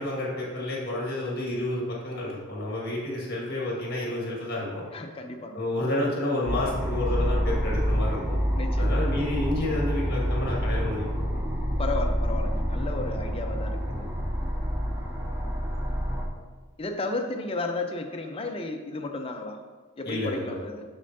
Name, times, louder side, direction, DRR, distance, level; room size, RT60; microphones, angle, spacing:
voice 1, 0.0-4.8 5.5-8.4 8.8-11.4 20.0-20.6, left 1 dB, 50° left, -4 dB, 1.7 m, -30 dB
voice 2, 4.9-5.6 8.6-9.0 11.8-14.1 16.8-19.6 20.0-20.8, left 2 dB, 25° left, 4 dB, 0.5 m, -33 dB
sound 1, 6.5-16.3, equal, 10° right, 0.7 m, -27 dB
6.7 x 6.6 x 2.7 m, 1.4 s
head